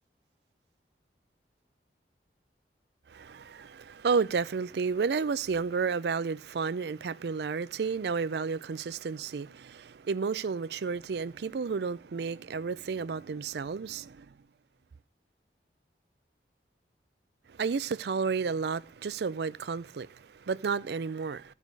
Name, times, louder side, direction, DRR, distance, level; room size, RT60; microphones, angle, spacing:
voice 1, 3.1-14.3 17.5-21.5, right 5 dB, 70° right, 0.4 m, -32 dB
13.0 x 4.8 x 5.2 m
head